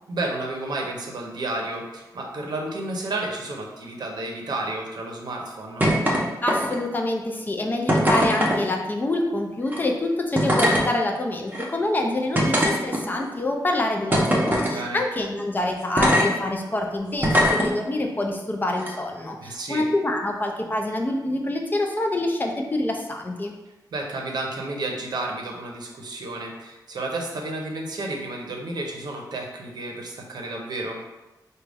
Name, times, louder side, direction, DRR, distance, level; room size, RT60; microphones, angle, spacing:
voice 1, 0.1-5.9 14.7-15.0 19.4-19.8 23.9-31.0, right 2 dB, 70° right, 1 dB, 0.7 m, -31 dB
sound 1, 5.8-6.2 6.5-6.9 7.9-8.6 9.6-9.8 10.3-10.8 11.5-11.6 12.3-13.2 14.1-14.7 16.0-16.3 17.2-17.7 18.8-18.9, equal, 25° right, 0.7 m, -20 dB
voice 2, 6.4-23.5, left 1 dB, 25° left, 2 dB, 0.4 m, -26 dB
4.9 x 2.2 x 3.4 m, 1.1 s
wide cardioid pair, 150°, 7 cm